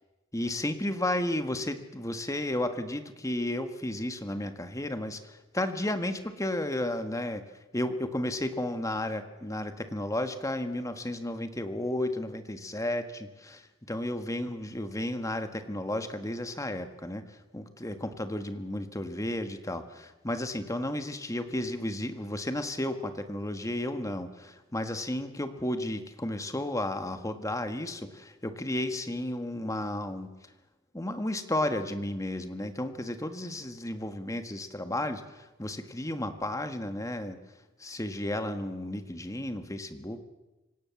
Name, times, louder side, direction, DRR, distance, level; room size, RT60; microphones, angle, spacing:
voice 1, 0.3-7.4 7.7-30.3 30.9-37.4 37.8-40.2, left 1 dB, 15° left, 8 dB, 1.6 m, -33 dB
26.0 x 17.0 x 7.1 m, 1.0 s
head